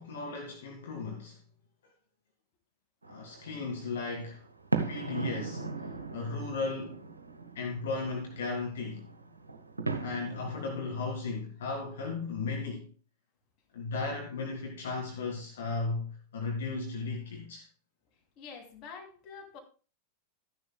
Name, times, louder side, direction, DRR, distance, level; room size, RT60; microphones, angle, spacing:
voice 1, 0.0-1.4 3.1-4.4 4.9-5.6 6.1-7.0 7.6-9.0 10.0-12.9 13.7-17.6, left 3 dB, 60° left, 1.8 m, -35 dB
sound 1, 3.0-10.6, right 3 dB, 80° right, 1.1 m, -38 dB
voice 2, 18.4-19.6, left 5 dB, 35° left, 2.7 m, -47 dB
13.5 x 10.5 x 2.2 m
figure-of-eight pair, 90°, 0 cm